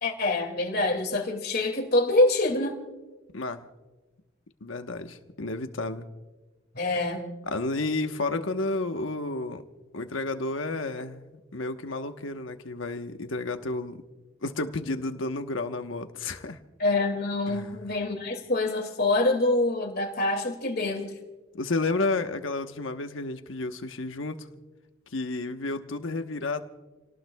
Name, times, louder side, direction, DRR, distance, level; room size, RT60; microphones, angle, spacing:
voice 1, 0.0-2.8 6.7-7.2 16.8-21.1, left 2 dB, 50° left, 4 dB, 2.4 m, -25 dB
voice 2, 3.3-3.7 4.6-6.0 7.5-9.6 9.9-14.0 14.4-16.6 17.5-17.8 21.5-24.5 25.1-26.6, left 2 dB, 75° left, 7 dB, 1.1 m, -31 dB
30.0 x 18.5 x 2.3 m, 1.2 s
head